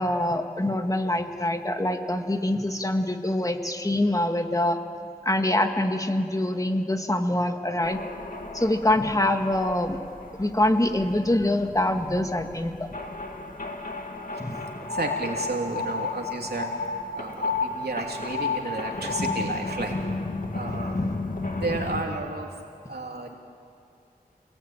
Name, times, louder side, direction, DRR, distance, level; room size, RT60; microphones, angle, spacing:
voice 1, 0.0-4.8 5.3-8.0 8.5-10.0 10.4-12.9 14.4-14.6 20.7-21.1, left 1 dB, 20° left, 5 dB, 2.0 m, -25 dB
sound 1, 7.8-22.0, left 2 dB, 60° left, 2.4 m, -35 dB
sound 2, 14.9-19.8, left 4 dB, 45° left, 1.3 m, -31 dB
voice 2, 14.9-16.7 17.1-20.0 20.5-21.0 21.6-22.5 22.9-23.3, right 3 dB, 85° right, 1 dB, 3.2 m, -32 dB
28.5 x 19.5 x 9.1 m, 2.4 s
wide cardioid pair, 60°, 16 cm